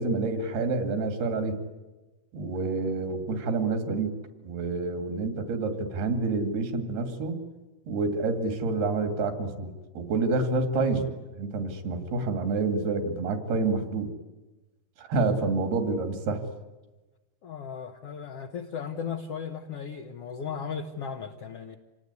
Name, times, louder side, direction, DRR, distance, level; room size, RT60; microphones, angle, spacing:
voice 1, 0.0-1.6 2.3-4.1 4.4-7.4 7.9-11.1 11.4-14.1 15.0-16.4, right 3 dB, 80° right, 6 dB, 4.4 m, -28 dB
voice 2, 17.4-21.8, left 6 dB, 75° left, 4 dB, 1.4 m, -36 dB
27.0 x 19.0 x 9.7 m, 1.1 s
omnidirectional pair, 4.4 m